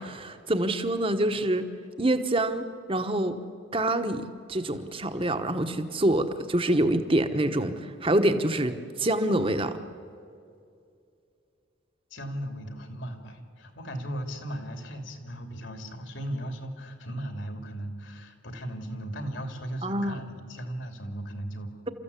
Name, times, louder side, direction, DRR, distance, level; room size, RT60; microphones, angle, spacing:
voice 1, 0.0-1.6 2.0-3.4 3.7-9.8 19.8-20.2, right 1 dB, 25° right, 8 dB, 1.2 m, -26 dB
voice 2, 12.1-21.9, right 1 dB, 65° left, 6 dB, 3.0 m, -37 dB
29.5 x 14.5 x 8.4 m, 2.4 s
head